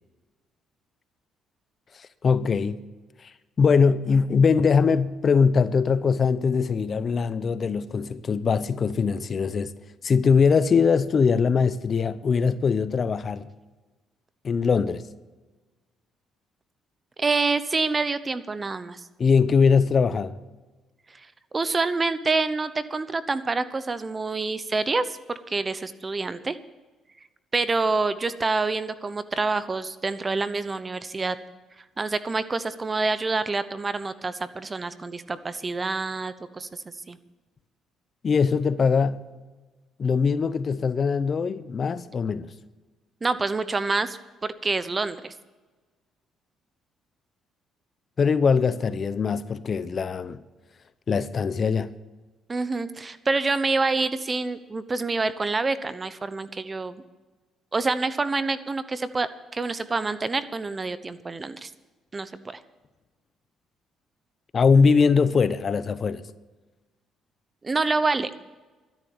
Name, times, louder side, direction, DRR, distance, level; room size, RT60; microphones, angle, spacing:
voice 1, 2.0-2.8 3.2-3.3 3.6-9.7 10.0-13.5 14.4-15.0 19.2-20.4 38.2-39.2 40.0-42.5 48.2-50.4 51.1-51.9 64.5-66.2, left 5 dB, 40° left, 0.7 m, -22 dB
voice 2, 17.2-19.0 21.5-26.6 27.5-31.4 32.0-37.2 43.2-45.3 52.5-57.0 57.7-61.7 62.1-62.6 67.6-68.3, right 3 dB, 25° right, 0.9 m, -27 dB
12.5 x 10.5 x 7.1 m
cardioid pair, 95°, 0 cm